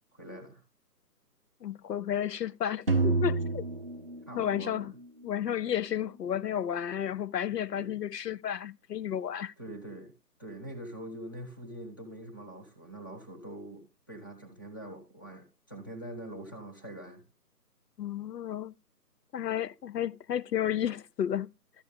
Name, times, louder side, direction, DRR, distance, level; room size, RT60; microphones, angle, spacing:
voice 1, 0.1-0.6 4.3-4.9 7.7-8.0 9.6-10.1 10.4-17.2, right 1 dB, 15° left, 0.8 m, -44 dB
voice 2, 1.6-3.6 4.4-4.9 5.2-9.5 18.0-18.7 19.3-21.5, left 10 dB, 80° left, 0.6 m, -32 dB
sound 1, 2.9-5.0, right 3 dB, 40° right, 0.5 m, -29 dB
13.0 x 6.7 x 3.5 m
figure-of-eight pair, 165°, 48 cm